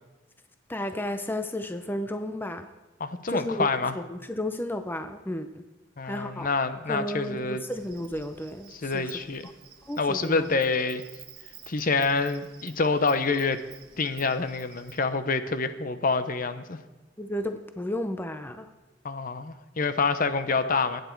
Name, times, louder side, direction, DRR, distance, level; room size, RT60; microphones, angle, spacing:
voice 1, 0.7-2.7 3.3-3.7 3.9-5.6 6.0-6.5 6.9-9.1 9.4-9.5 9.9-10.6 17.2-18.7, left 1 dB, 10° left, 8 dB, 0.6 m, -33 dB
voice 2, 3.0-4.0 6.0-7.6 8.7-9.4 10.0-11.0 11.7-13.6 14.0-16.8 19.0-21.0, left 4 dB, 45° left, 11 dB, 0.7 m, -27 dB
Insect, 7.7-15.1, right 9 dB, 55° right, 1.6 m, -50 dB
23.0 x 9.3 x 4.6 m, 1.1 s
head